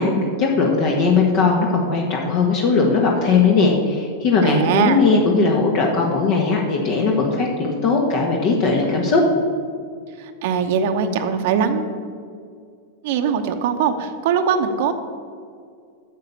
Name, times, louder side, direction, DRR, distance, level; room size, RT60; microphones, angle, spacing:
voice 1, 0.0-9.2, left 4 dB, 55° left, 0 dB, 1.4 m, -18 dB
voice 2, 4.4-5.0 10.2-11.9 13.0-14.9, right 7 dB, 65° right, 6 dB, 0.8 m, -21 dB
7.5 x 7.4 x 6.9 m, 2.2 s
hypercardioid pair, 100°, 0 cm